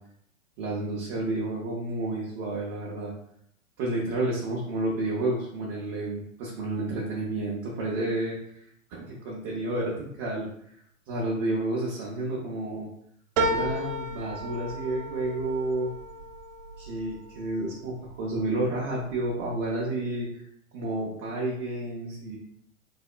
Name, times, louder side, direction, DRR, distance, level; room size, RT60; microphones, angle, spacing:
voice 1, 0.6-3.1 3.8-8.4 8.9-10.5 11.1-12.9 13.5-15.9 16.8-20.4 20.7-22.4, right 2 dB, 20° right, -4 dB, 0.3 m, -30 dB
sound 1, 13.4-18.1 18.6-19.3 19.7-19.8, right 1 dB, 65° right, 0.7 m, -33 dB
3.3 x 2.9 x 2.3 m, 0.69 s
hypercardioid pair, 115°, 41 cm